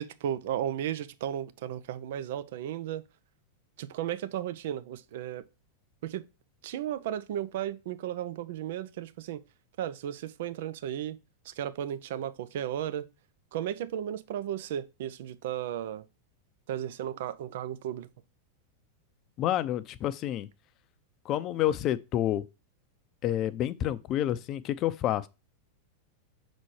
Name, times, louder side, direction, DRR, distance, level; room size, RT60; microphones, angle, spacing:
voice 1, 0.0-3.0 3.8-5.4 6.0-6.2 6.6-9.4 9.8-11.2 11.5-13.1 13.5-16.0 16.7-18.1, right 10 dB, 65° right, 0.6 m, -34 dB
voice 2, 19.4-20.5 21.2-22.4 23.2-25.3, left 12 dB, 40° left, 0.6 m, -29 dB
6.2 x 4.2 x 4.7 m
hypercardioid pair, 100°, 0 cm